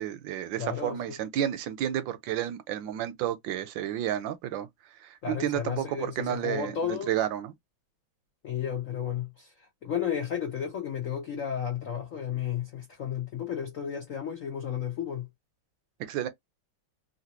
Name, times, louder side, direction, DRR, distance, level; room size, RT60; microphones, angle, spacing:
voice 1, 0.0-4.7 5.0-7.5 16.0-16.3, right 11 dB, 75° right, 1.3 m, -31 dB
voice 2, 0.6-1.2 5.2-7.1 8.4-15.3, left 8 dB, 55° left, 1.0 m, -33 dB
3.3 x 2.7 x 2.8 m
omnidirectional pair, 2.2 m